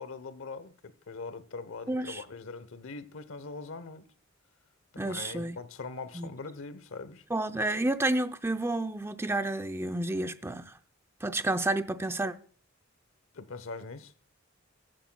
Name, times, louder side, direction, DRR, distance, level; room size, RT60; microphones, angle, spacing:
voice 1, 0.0-4.0 4.9-7.2 13.3-14.1, left 4 dB, 75° left, 0.9 m, -42 dB
voice 2, 1.9-2.2 5.0-5.6 6.1-6.3 7.3-10.7 11.2-12.3, right 2 dB, 10° right, 0.5 m, -30 dB
15.0 x 11.5 x 2.3 m
head